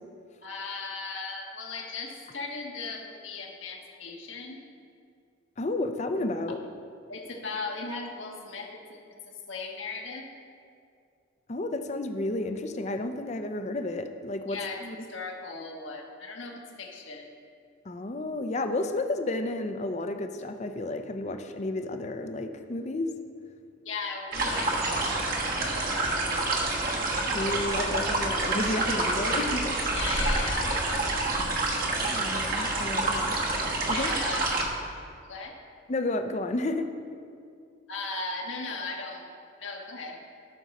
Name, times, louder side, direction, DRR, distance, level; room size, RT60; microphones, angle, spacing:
voice 1, 0.4-4.6 7.1-10.2 14.5-14.8 15.1-17.3 23.8-26.8 29.9-31.4 33.9-34.5 35.3-35.5 37.9-39.3 39.6-40.2, left 3 dB, 85° left, 1 dB, 1.3 m, -38 dB
voice 2, 5.6-6.6 11.5-15.0 17.9-23.1 27.3-29.9 32.0-33.4 33.9-34.1 35.9-36.9, left 2 dB, 35° left, 7 dB, 0.5 m, -31 dB
sound 1, 24.3-34.6, right 2 dB, 45° right, 1.2 m, -28 dB
13.0 x 6.2 x 4.1 m, 2.3 s
head